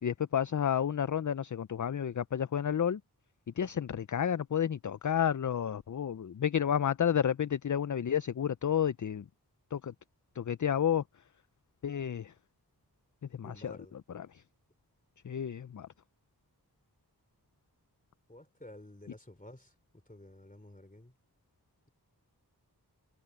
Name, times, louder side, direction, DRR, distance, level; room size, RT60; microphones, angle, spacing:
voice 1, 0.0-3.0 3.6-9.3 9.7-9.9 10.3-11.2 11.8-12.3 13.3-13.8 14.1-14.4 15.2-15.9, left 8 dB, 50° left, 0.5 m, -31 dB
voice 2, 13.4-13.9 18.3-21.2, left 1 dB, 20° left, 3.1 m, -52 dB
wide cardioid pair, 50°, 39 cm